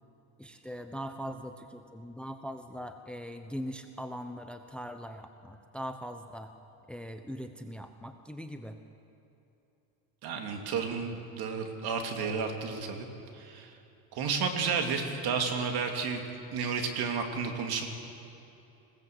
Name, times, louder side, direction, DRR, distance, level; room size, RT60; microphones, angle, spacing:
voice 1, 0.4-6.5 6.9-8.8, equal, ahead, 8 dB, 0.9 m, -41 dB
voice 2, 10.2-13.1 13.3-13.7 14.1-16.2 16.5-17.9, right 5 dB, 60° right, 4 dB, 2.8 m, -32 dB
20.5 x 17.0 x 7.9 m, 2.8 s
supercardioid pair, 110°, 43 cm